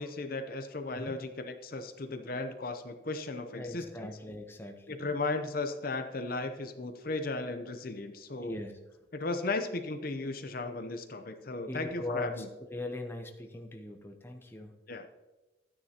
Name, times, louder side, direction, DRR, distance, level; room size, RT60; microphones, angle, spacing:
voice 1, 0.0-4.1 4.9-8.6 9.1-12.5 14.9-15.2, left 3 dB, 45° left, 7 dB, 0.7 m, -36 dB
voice 2, 3.5-5.2 8.4-8.8 11.7-14.8, left 2 dB, 10° left, 3 dB, 0.7 m, -40 dB
12.5 x 9.7 x 2.9 m, 1.2 s
head